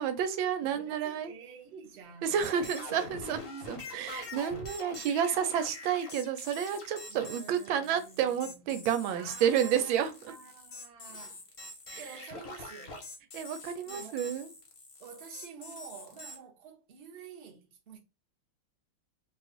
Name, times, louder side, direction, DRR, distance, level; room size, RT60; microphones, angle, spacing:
voice 1, 0.0-1.3 2.2-3.4 3.6-10.3 11.9-12.0 13.3-14.5, right 8 dB, 90° right, 1.4 m, -30 dB
voice 2, 0.6-3.0 4.2-4.3 7.1-8.8 9.1-11.4 11.9-13.1 13.8-14.2 15.0-18.0, right 6 dB, 50° right, 0.8 m, -49 dB
sound 1, 2.4-16.4, left 2 dB, 45° left, 0.7 m, -45 dB
3.1 x 2.4 x 3.8 m
omnidirectional pair, 2.1 m